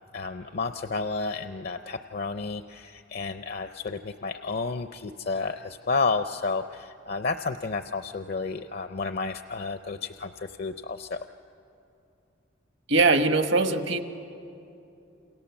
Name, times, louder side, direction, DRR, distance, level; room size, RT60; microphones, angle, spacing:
voice 1, 0.1-11.2, left 4 dB, 50° left, 9 dB, 0.6 m, -31 dB
voice 2, 12.9-14.0, right 3 dB, 65° right, 8 dB, 1.3 m, -21 dB
28.5 x 28.0 x 7.1 m, 2.7 s
head